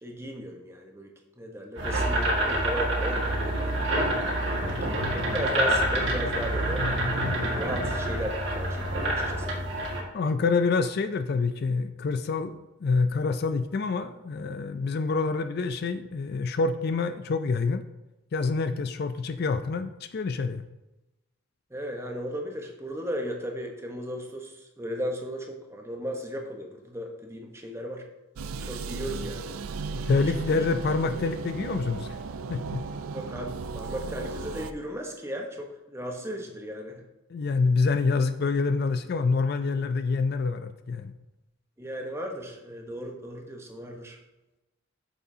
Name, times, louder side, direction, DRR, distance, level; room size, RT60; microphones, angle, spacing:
voice 1, 0.0-1.1 1.4-3.7 4.4-6.9 7.4-9.6 21.7-28.0 28.6-29.6 30.2-30.6 33.1-37.0 41.8-44.2, equal, 15° right, 2 dB, 1.0 m, -36 dB
sound 1, 1.8-10.0, right 1 dB, 60° right, 1.8 m, -27 dB
voice 2, 10.1-17.8 18.3-20.6 30.0-32.2 32.5-32.8 37.3-41.1, left 4 dB, 50° left, 10 dB, 0.4 m, -27 dB
sound 2, 28.4-34.7, right 4 dB, 90° right, 0.4 m, -35 dB
8.8 x 6.8 x 2.7 m, 0.98 s
head